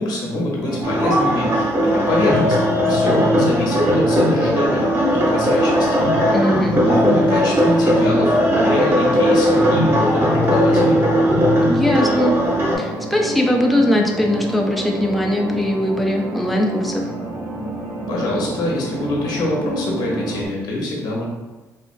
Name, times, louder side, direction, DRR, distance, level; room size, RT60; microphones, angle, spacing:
voice 1, 0.0-5.9 6.7-11.0 18.1-21.2, left 2 dB, 70° left, -3 dB, 0.7 m, -24 dB
sound 1, 0.6-20.5, right 2 dB, 70° right, 0.8 m, -29 dB
sound 2, 0.8-12.8, equal, 35° right, 0.9 m, -18 dB
voice 2, 6.3-6.8 11.7-12.4 12.8-17.0, left 1 dB, ahead, 0 dB, 0.4 m, -20 dB
2.8 x 2.4 x 2.5 m, 1.1 s
cardioid pair, 85°, 7 cm